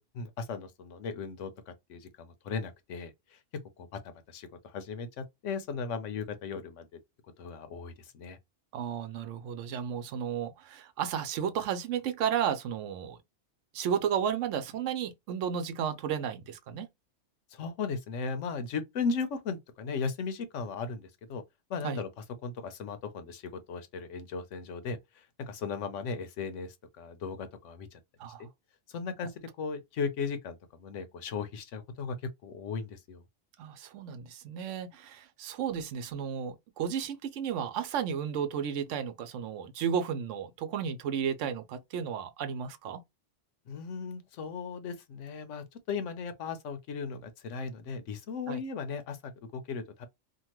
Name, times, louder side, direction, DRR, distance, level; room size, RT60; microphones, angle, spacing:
voice 1, 0.0-3.4 3.8-4.0 4.3-6.9 7.4-8.4 17.5-21.4 21.7-22.1 22.4-28.0 28.4-28.5 28.9-33.2 43.7-50.1, left 5 dB, 80° left, 1.0 m, -37 dB
voice 2, 8.7-13.2 13.7-16.9 21.8-22.0 28.2-28.5 33.6-43.0 48.5-48.6, right 8 dB, 85° right, 0.9 m, -33 dB
2.8 x 2.3 x 2.9 m
omnidirectional pair, 1.2 m